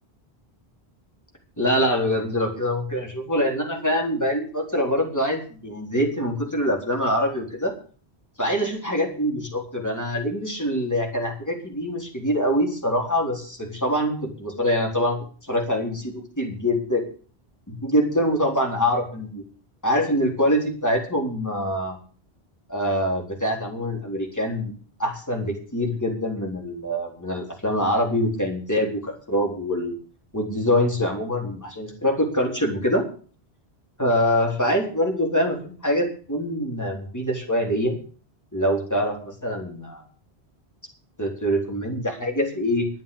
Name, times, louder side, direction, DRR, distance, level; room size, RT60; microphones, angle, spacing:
voice 1, 1.6-7.7 8.4-17.0 17.7-19.4 19.8-22.0 22.7-24.7 25.0-29.9 30.3-33.0 34.0-38.0 38.5-40.0 41.2-42.9, equal, 15° left, 0 dB, 3.9 m, -24 dB
12.0 x 9.2 x 8.6 m, 0.42 s
omnidirectional pair, 1.1 m